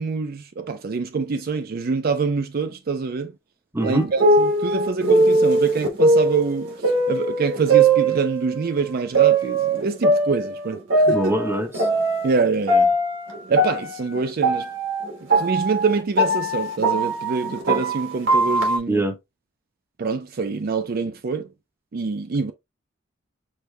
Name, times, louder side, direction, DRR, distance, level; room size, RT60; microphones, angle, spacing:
voice 1, 0.0-3.3 3.8-11.4 12.2-12.9 13.5-14.7 15.4-19.0 20.0-21.5 21.9-22.5, right 4 dB, 50° right, 0.4 m, -25 dB
voice 2, 3.7-4.1 11.1-11.9 18.9-19.2, right 1 dB, 10° right, 0.9 m, -23 dB
sound 1, 3.8-8.6 9.1-12.4 12.7-18.8, right 2 dB, 80° right, 1.4 m, -20 dB
6.5 x 2.2 x 3.2 m
head